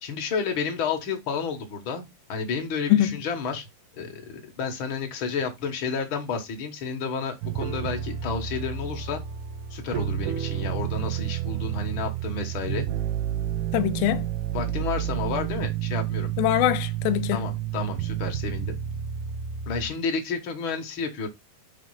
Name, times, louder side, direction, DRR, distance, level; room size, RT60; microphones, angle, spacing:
voice 1, 0.0-3.7 4.0-9.2 9.7-12.9 14.5-16.3 17.3-18.8 19.7-21.3, left 5 dB, 60° left, 1.3 m, -31 dB
voice 2, 2.9-3.2 13.7-14.3 16.4-17.5, left 13 dB, 85° left, 2.4 m, -23 dB
sound 1, 7.4-19.9, right 11 dB, 90° right, 2.8 m, -30 dB
6.5 x 4.2 x 5.6 m
omnidirectional pair, 4.3 m